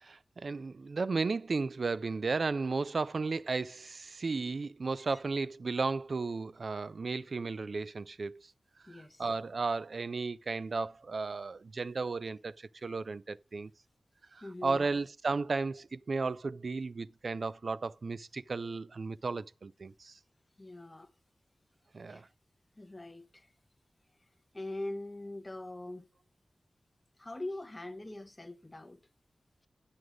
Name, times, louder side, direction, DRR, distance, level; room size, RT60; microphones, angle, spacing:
voice 1, 0.0-8.4 8.9-13.7 14.3-20.1 21.9-22.3, right 4 dB, 60° right, 0.4 m, -34 dB
voice 2, 8.9-9.3 14.4-14.9 20.6-21.1 22.1-22.3 22.8-23.5 24.5-26.1 27.2-29.0, left 2 dB, 20° left, 0.9 m, -42 dB
9.6 x 6.4 x 4.9 m
wide cardioid pair, 85°, 0 cm